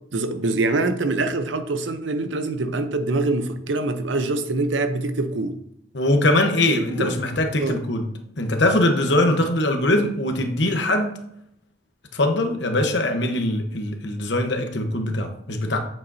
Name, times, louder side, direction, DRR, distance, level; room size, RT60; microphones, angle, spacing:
voice 1, 0.1-5.6 6.7-7.2 7.6-7.8, right 2 dB, 85° right, 0.7 m, -24 dB
voice 2, 5.9-8.0 8.4-11.1 12.1-15.8, left 1 dB, 70° left, 1.1 m, -22 dB
8.6 x 7.0 x 2.7 m
head